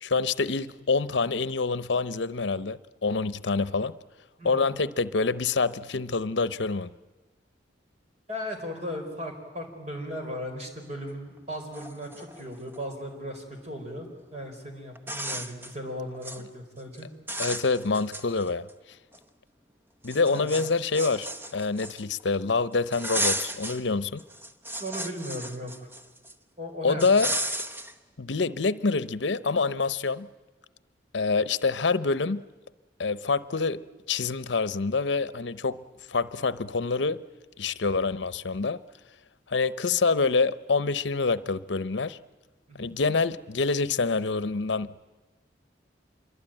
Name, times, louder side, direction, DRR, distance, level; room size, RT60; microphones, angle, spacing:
voice 1, 0.0-4.0 4.4-6.9 17.4-18.7 20.0-24.2 26.8-27.3 28.2-30.3 31.1-32.4 33.0-33.8 34.1-35.8 36.1-37.2 37.6-38.8 39.5-42.2 42.8-45.1, left 4 dB, 80° left, 0.8 m, -26 dB
voice 2, 4.4-4.7 8.3-14.1 14.3-17.1 20.3-20.5 24.8-25.7 26.6-27.0 42.7-43.0, equal, 35° right, 4.8 m, -37 dB
sound 1, 11.4-11.5 11.7-12.8 14.3-14.4 15.0-15.7 16.1-16.4 16.8-17.0 17.3-18.7 19.1-19.2 20.0-22.2 22.9-23.8 24.2-26.3 27.0-27.9, right 1 dB, 10° right, 1.0 m, -34 dB
26.5 x 23.0 x 9.0 m
head